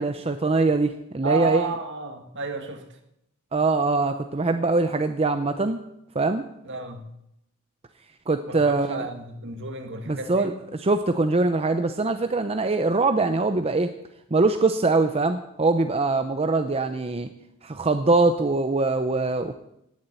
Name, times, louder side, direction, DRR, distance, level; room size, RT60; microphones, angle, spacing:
voice 1, 0.0-1.7 3.5-5.8 6.1-6.4 8.3-9.0 10.1-10.5 10.8-13.9 14.3-17.3 17.6-19.5, right 3 dB, 25° right, 0.7 m, -23 dB
voice 2, 1.2-2.8 6.6-7.1 8.5-10.6, right 3 dB, 55° right, 1.9 m, -31 dB
17.0 x 7.4 x 9.0 m
head